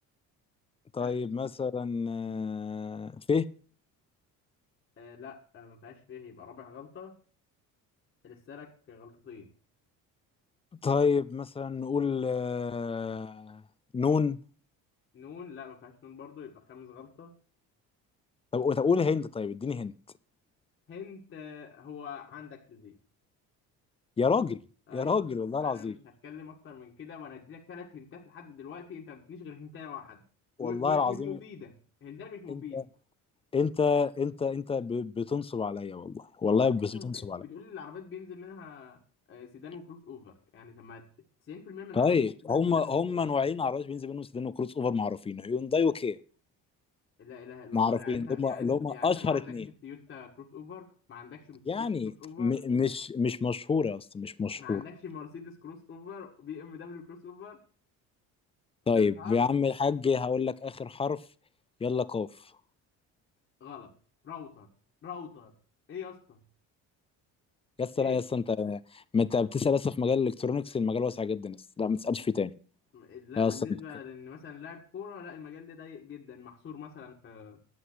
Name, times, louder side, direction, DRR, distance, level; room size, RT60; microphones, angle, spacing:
voice 1, 0.9-3.5 10.8-13.6 13.9-14.4 18.5-19.9 24.2-24.6 24.9-26.0 30.6-31.4 32.5-32.8 33.5-37.4 41.9-46.2 47.7-49.7 51.7-52.1 52.4-54.8 58.9-61.2 61.8-62.3 67.8-72.5 73.4-73.8, left 5 dB, 20° left, 17 dB, 0.4 m, -28 dB
voice 2, 5.0-7.1 8.2-9.5 15.1-17.4 20.9-23.0 24.9-25.2 25.6-30.2 30.6-31.7 32.0-32.9 36.4-39.0 39.3-41.1 41.4-43.2 47.2-49.5 49.8-51.9 52.2-52.5 54.6-57.6 58.9-59.5 63.6-63.9 64.2-64.7 65.0-65.6 65.9-66.4 67.9-68.2 72.9-77.6, left 7 dB, 40° left, -2 dB, 1.7 m, -45 dB
11.0 x 7.9 x 6.1 m, 0.39 s
cardioid pair, 140°, 33 cm